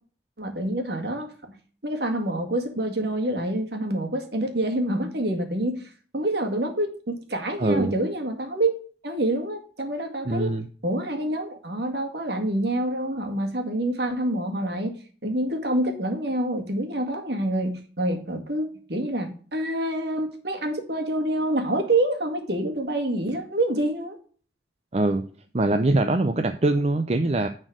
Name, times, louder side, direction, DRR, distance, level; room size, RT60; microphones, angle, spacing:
voice 1, 0.4-1.6 1.8-5.8 6.1-8.7 9.0-10.5 10.8-14.9 15.2-24.2, right 1 dB, 60° right, 4 dB, 1.9 m, -27 dB
voice 2, 7.6-8.0 10.3-10.7 24.9-25.2 25.5-27.5, right 2 dB, 35° right, 7 dB, 0.6 m, -23 dB
9.9 x 4.4 x 6.1 m, 0.42 s
head